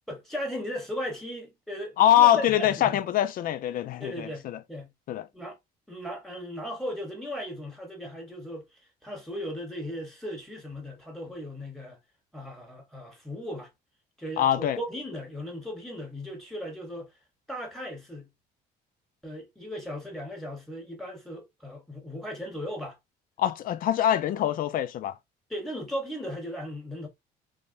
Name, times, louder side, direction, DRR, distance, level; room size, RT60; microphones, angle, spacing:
voice 1, 0.1-3.0 4.0-4.9 5.3-5.6 5.9-8.7 9.0-12.0 12.3-13.7 14.2-17.1 17.5-18.3 19.2-23.0 25.5-27.1, equal, ahead, 1.1 m, -37 dB
voice 2, 2.0-4.6 5.1-5.3 14.4-14.8 23.4-25.1, left 11 dB, 55° left, 0.4 m, -23 dB
3.3 x 2.2 x 2.5 m
cardioid pair, 110°, 17 cm